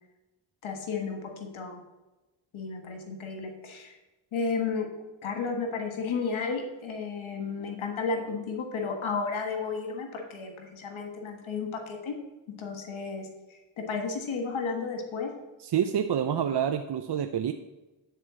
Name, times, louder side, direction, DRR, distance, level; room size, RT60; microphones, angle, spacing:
voice 1, 0.6-1.8 2.5-4.0 4.3-4.9 5.2-12.2 12.6-15.3, left 4 dB, 90° left, 3 dB, 1.5 m, -33 dB
voice 2, 15.6-17.5, right 8 dB, 60° right, 7 dB, 0.7 m, -27 dB
10.0 x 4.5 x 7.5 m, 1.1 s
cardioid pair, 55°, 46 cm